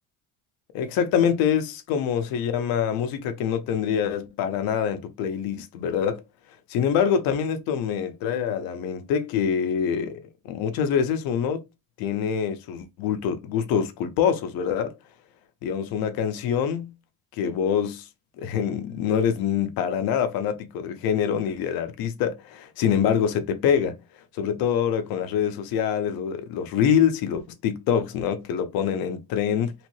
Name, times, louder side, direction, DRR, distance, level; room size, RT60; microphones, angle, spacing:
voice 1, 0.7-6.2 6.7-11.6 12.0-14.9 15.6-16.9 17.4-18.0 18.4-24.0 24.3-29.7, left 8 dB, 85° left, 0.8 m, -25 dB
3.3 x 2.7 x 3.1 m
cardioid pair, 150°, 35 cm